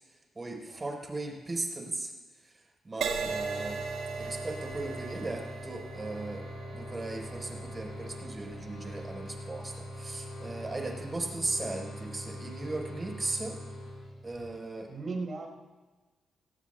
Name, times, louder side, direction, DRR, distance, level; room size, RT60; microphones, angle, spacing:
voice 1, 0.4-2.1 2.4-3.9 4.2-6.4 6.7-13.6 14.2-14.9, right 2 dB, 30° right, 1 dB, 3.9 m, -37 dB
Crash cymbal, 3.0-10.6 11.3-11.6, right 5 dB, 70° right, 1.3 m, -39 dB
sound 1, 3.1-14.5, equal, 70° left, 4.0 m, -43 dB
voice 2, 14.9-15.6, right 3 dB, 50° right, 1 dB, 4.5 m, -38 dB
21.0 x 17.5 x 2.2 m, 1.3 s
hypercardioid pair, 45°, 0 cm